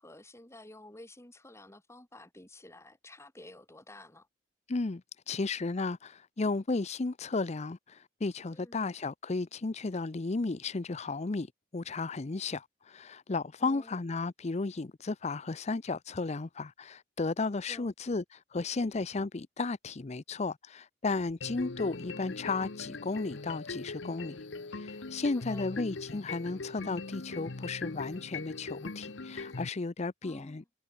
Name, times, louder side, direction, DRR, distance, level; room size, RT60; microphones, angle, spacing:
voice 1, 0.0-4.3 8.5-8.9 13.6-14.0 17.7-17.9 25.4-25.7 30.2-30.7, left 1 dB, 15° left, 2.6 m, -51 dB
voice 2, 4.7-30.6, left 3 dB, 35° left, 0.6 m, -34 dB
sound 1, 21.4-29.7, left 3 dB, 75° left, 1.1 m, -41 dB
head